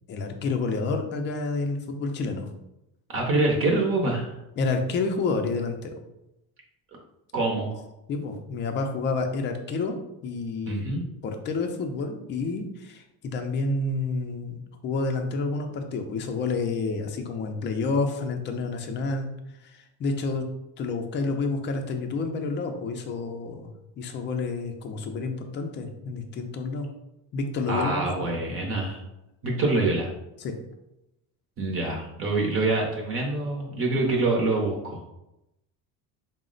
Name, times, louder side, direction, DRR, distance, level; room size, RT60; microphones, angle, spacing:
voice 1, 0.1-2.5 4.6-6.0 8.1-10.8 11.2-19.3 19.6-20.5 20.8-26.9 27.3-28.4 30.4-30.6, left 3 dB, 30° left, 4 dB, 0.4 m, -29 dB
voice 2, 3.1-4.3 7.3-7.8 10.7-11.0 27.7-29.0 29.4-30.1 31.6-35.0, right 2 dB, 35° right, 0 dB, 0.7 m, -25 dB
4.0 x 2.1 x 3.7 m, 0.89 s
cardioid pair, 155°, 37 cm